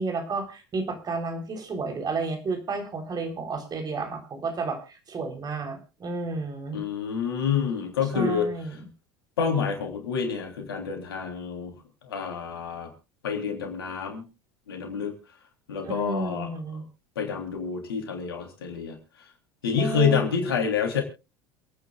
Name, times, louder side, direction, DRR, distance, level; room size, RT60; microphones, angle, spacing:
voice 1, 0.0-6.8 8.1-8.9 15.8-16.8 19.8-20.4, right 3 dB, 35° right, 6 dB, 3.7 m, -32 dB
voice 2, 6.7-8.5 9.4-11.7 12.0-12.9 13.2-14.3 14.7-15.1 15.7-16.5 17.2-19.0 19.6-21.0, left 6 dB, 80° left, 4 dB, 3.4 m, -28 dB
27.5 x 9.5 x 2.4 m, 0.29 s
hypercardioid pair, 75°, 12 cm